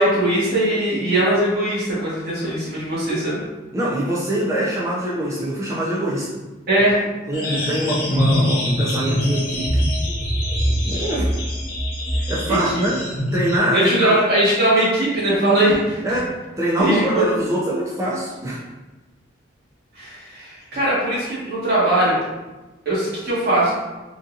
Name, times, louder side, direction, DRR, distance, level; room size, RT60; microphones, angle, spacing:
voice 1, 0.0-3.4 6.7-7.0 12.5-12.6 13.7-16.2 16.8-17.2 19.9-22.2 22.8-23.7, right 1 dB, 50° right, -9 dB, 1.5 m, -20 dB
voice 2, 3.7-6.4 7.3-9.8 10.8-11.3 12.3-13.0 13.3-14.1 16.0-16.3 16.6-18.6, right 1 dB, 15° right, -7 dB, 0.4 m, -23 dB
sound 1, 7.3-13.6, equal, 50° left, 1.0 m, -23 dB
3.9 x 2.7 x 2.4 m, 1.1 s
head